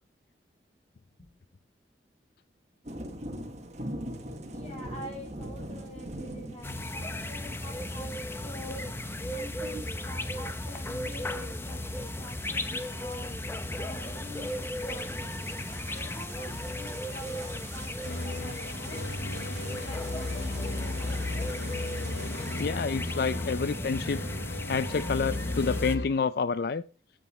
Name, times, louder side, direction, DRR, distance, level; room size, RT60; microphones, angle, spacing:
sound 1, 2.8-22.6, right 1 dB, 40° right, 1.6 m, -45 dB
voice 1, 4.5-8.8 9.3-13.4 13.7-19.1 19.7-21.4 23.1-23.3, left 1 dB, 35° left, 6.6 m, -46 dB
sound 2, 6.6-26.0, left 1 dB, 15° left, 0.9 m, -36 dB
sound 3, 18.0-26.1, left 2 dB, 75° left, 0.9 m, -36 dB
voice 2, 22.6-24.2 24.7-26.8, left 5 dB, 60° left, 0.4 m, -28 dB
13.0 x 7.7 x 4.2 m
head